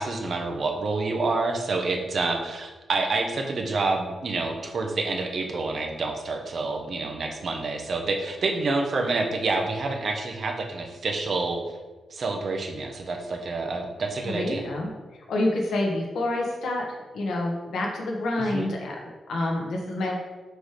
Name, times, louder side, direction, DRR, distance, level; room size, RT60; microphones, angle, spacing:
voice 1, 0.0-11.6 12.1-14.7 18.4-18.7, right 3 dB, 45° right, 3 dB, 0.8 m, -28 dB
voice 2, 14.2-14.9 15.3-16.9 17.1-18.9 19.3-20.1, left 1 dB, 85° left, 0 dB, 1.2 m, -27 dB
6.2 x 3.2 x 5.1 m, 1.2 s
wide cardioid pair, 150°, 0 cm